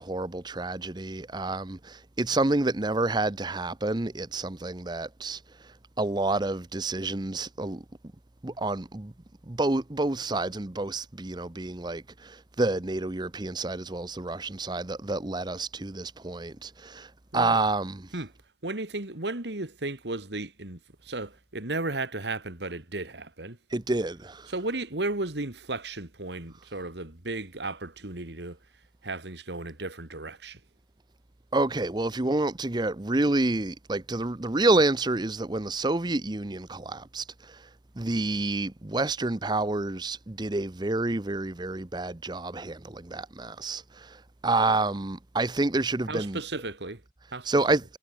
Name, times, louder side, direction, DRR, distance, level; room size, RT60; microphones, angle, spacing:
voice 1, 0.0-7.8 8.4-9.1 9.5-18.1 23.7-24.5 31.5-37.7 38.0-46.4 47.4-47.8, right 2 dB, 25° right, 0.8 m, -29 dB
voice 2, 18.6-23.6 24.5-28.6 29.0-30.6 46.1-47.0 47.3-47.5, right 2 dB, 75° right, 2.4 m, -34 dB
head